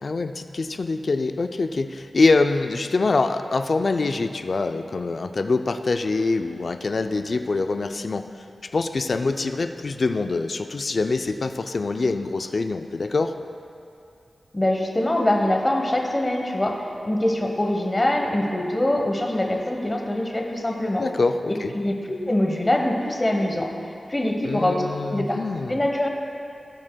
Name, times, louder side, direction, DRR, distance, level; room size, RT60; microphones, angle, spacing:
voice 1, 0.0-8.3 8.7-13.3 20.9-21.7 24.4-25.8, left 3 dB, 50° left, 7 dB, 0.4 m, -24 dB
voice 2, 14.5-16.7 17.0-21.0 21.7-23.7 24.1-24.8 25.1-25.4 25.7-26.1, left 1 dB, 20° left, 1 dB, 1.0 m, -23 dB
17.5 x 6.2 x 2.2 m, 2.6 s
wide cardioid pair, 105°, 0 cm